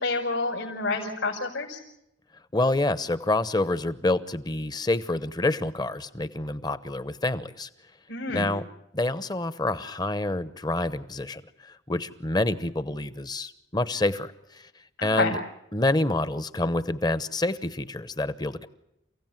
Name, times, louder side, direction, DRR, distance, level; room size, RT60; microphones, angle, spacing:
voice 1, 0.0-1.8 8.1-8.6 15.0-15.4, left 3 dB, 80° left, -3 dB, 5.2 m, -28 dB
voice 2, 2.5-7.7 8.3-8.6 8.9-11.4 11.7-14.3 15.0-15.4 15.7-18.7, left 2 dB, 20° left, 14 dB, 0.9 m, -27 dB
29.0 x 16.5 x 9.1 m, 0.85 s
head